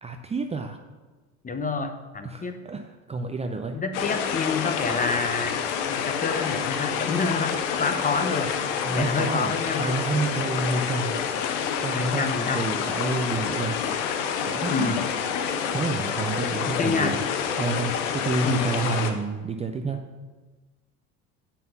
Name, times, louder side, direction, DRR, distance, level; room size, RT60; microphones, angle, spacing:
voice 1, 0.0-0.8 2.2-3.8 7.9-8.1 8.8-11.2 11.8-12.3 12.5-13.8 14.5-14.9 15.7-17.2 17.6-20.0, right 3 dB, 15° right, 6 dB, 0.5 m, -29 dB
voice 2, 1.4-2.6 3.7-5.6 5.9-8.5 8.9-9.9 11.9-12.7 14.7-15.1 16.6-17.2 18.4-18.7, left 4 dB, 20° left, 8 dB, 0.8 m, -28 dB
sound 1, 3.9-19.1, left 7 dB, 75° left, 0.9 m, -28 dB
7.5 x 5.7 x 5.6 m, 1.3 s
hypercardioid pair, 75°, 37 cm